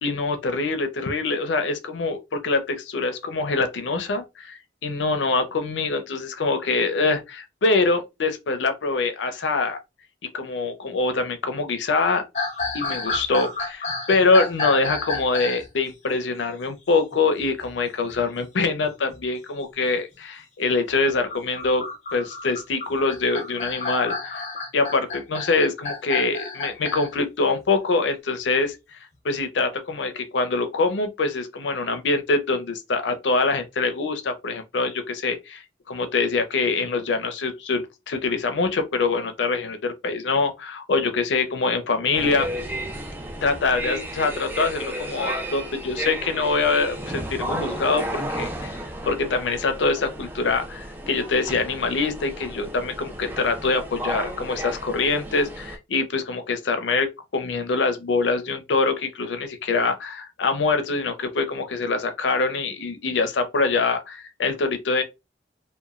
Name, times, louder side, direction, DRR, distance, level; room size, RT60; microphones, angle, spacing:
voice 1, 0.0-9.8 10.3-12.2 12.7-21.8 22.1-24.5 24.7-28.8 29.2-42.5 43.4-48.8 49.0-57.1 57.3-65.0, left 3 dB, 90° left, 0.5 m, -24 dB
sound 1, 12.3-15.7 17.1-17.7 18.1-18.2 18.9-19.2 20.9-27.1, left 3 dB, 40° left, 0.7 m, -31 dB
sound 2, 42.1-55.8, right 1 dB, 10° right, 0.4 m, -33 dB
2.9 x 2.2 x 2.4 m
head